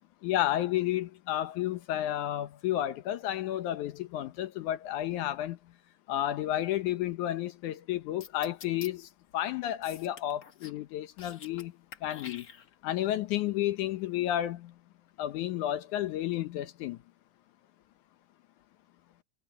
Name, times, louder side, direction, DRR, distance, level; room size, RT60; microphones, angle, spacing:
voice 1, 0.2-5.6 6.1-11.7 12.0-12.5 12.8-14.7 15.2-17.0, left 13 dB, 75° left, 2.2 m, -31 dB
sound 1, 8.2-8.9 9.8-10.8 11.1-11.6 11.9-12.9, left 6 dB, 90° left, 0.8 m, -47 dB
omnidirectional pair, 3.7 m